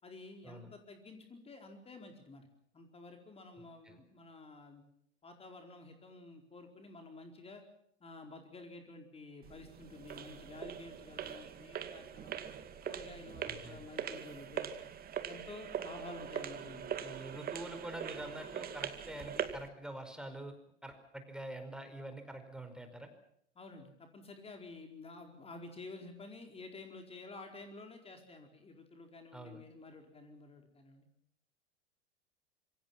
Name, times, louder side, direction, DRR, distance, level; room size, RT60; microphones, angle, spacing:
voice 1, 0.0-2.5 2.7-4.8 5.2-7.6 8.0-12.4 12.8-14.7 15.3-16.9 23.5-31.1, left 3 dB, 15° left, 4 dB, 4.5 m, -51 dB
sound 1, 9.4-19.7, right 9 dB, 25° right, 2.3 m, -42 dB
voice 2, 13.5-13.9 17.0-20.5 20.8-23.1 29.3-29.6, right 1 dB, ahead, 7 dB, 5.0 m, -46 dB
26.5 x 25.0 x 5.8 m, 0.71 s
figure-of-eight pair, 95°, 34 cm